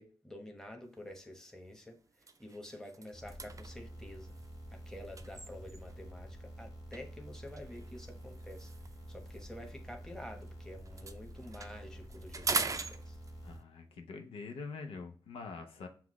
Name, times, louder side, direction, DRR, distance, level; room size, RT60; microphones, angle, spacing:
voice 1, 0.0-2.0 2.4-4.3 4.7-8.7 9.1-13.2, left 1 dB, 5° left, 2 dB, 1.0 m, -49 dB
sound 1, 1.0-1.2 1.6-1.8 2.1-6.1 6.9-10.5 10.8-13.6, right 4 dB, 35° right, 0.4 m, -42 dB
sound 2, 3.1-13.6, right 1 dB, 40° left, 1.8 m, -49 dB
voice 2, 13.4-15.9, left 4 dB, 90° left, 5 dB, 0.7 m, -45 dB
5.8 x 2.4 x 3.0 m, 0.43 s
cardioid pair, 70°, 9 cm